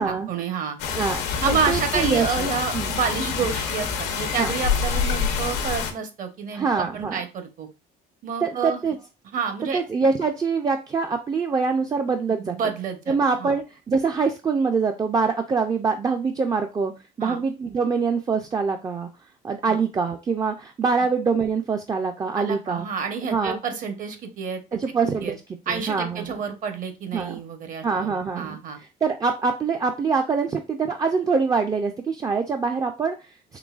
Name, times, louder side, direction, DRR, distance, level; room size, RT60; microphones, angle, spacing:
voice 1, 0.0-0.8 1.4-7.7 8.2-8.9 9.3-9.8 12.3-13.6 17.2-17.4 19.6-19.8 22.4-24.8 25.2-25.4 25.7-28.8, right 6 dB, 50° right, 7 dB, 0.8 m, -29 dB
sound 1, 0.8-5.9, left 6 dB, 90° left, 0.8 m, -26 dB
voice 2, 0.9-1.2 1.5-2.9 4.4-4.5 6.5-7.2 8.4-9.0 9.7-12.5 13.1-16.9 17.2-19.1 19.4-22.9 23.3-23.6 24.7-25.3 25.7-26.4 27.1-27.4 27.8-28.6 29.0-33.1, right 5 dB, 20° right, 4 dB, 0.3 m, -24 dB
3.8 x 3.0 x 2.3 m, 0.29 s
cardioid pair, 110°, 17 cm